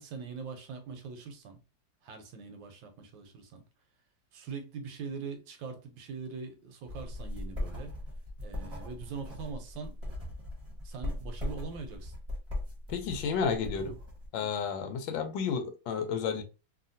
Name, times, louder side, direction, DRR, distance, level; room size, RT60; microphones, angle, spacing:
voice 1, 0.0-1.6 2.0-3.6 4.3-7.9 8.4-10.0 10.8-12.1 13.5-14.0, right 5 dB, 75° right, 1.3 m, -42 dB
sound 1, 6.9-14.3, left 1 dB, 20° right, 1.1 m, -39 dB
voice 2, 12.9-13.9 14.3-16.4, left 6 dB, 75° left, 1.2 m, -31 dB
2.9 x 2.7 x 2.6 m
omnidirectional pair, 2.2 m